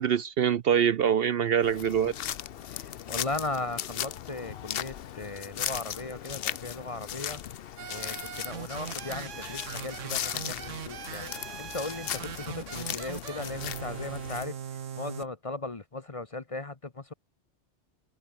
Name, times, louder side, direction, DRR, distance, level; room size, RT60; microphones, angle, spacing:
voice 1, 0.0-2.1, right 8 dB, 60° right, 0.8 m, -24 dB
sound 1, 1.6-14.5, left 10 dB, 60° left, 0.8 m, -37 dB
voice 2, 2.7-7.4 7.9-11.3 11.6-17.1, left 2 dB, 30° left, 1.0 m, -37 dB
sound 2, 7.8-15.2, right 8 dB, 90° right, 1.4 m, -40 dB
omnidirectional pair, 1.2 m